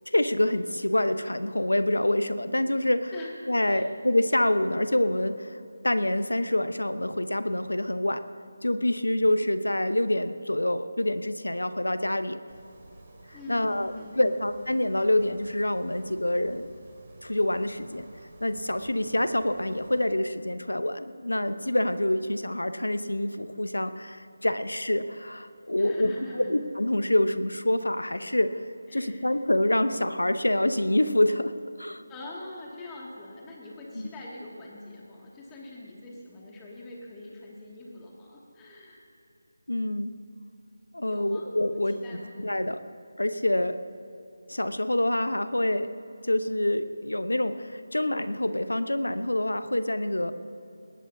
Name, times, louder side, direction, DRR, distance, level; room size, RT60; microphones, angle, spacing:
voice 1, 0.1-3.1 3.5-5.5 5.8-8.2 8.6-12.4 13.5-16.7 17.2-18.1 18.4-28.6 28.9-31.5 31.8-32.0 39.7-40.1 40.9-42.0 42.4-42.8 43.2-43.8 44.5-45.9 46.2-50.3, left 1 dB, 85° left, 11 dB, 0.8 m, -26 dB
sound 1, 12.5-20.0, right 2 dB, 30° right, 2.5 m, -52 dB
voice 2, 13.3-14.5 25.8-26.5 28.9-29.3 32.1-39.1 41.1-42.4, left 2 dB, 10° left, -4 dB, 2.2 m, -44 dB
19.5 x 18.5 x 2.8 m, 2.9 s
figure-of-eight pair, 160°, 0 cm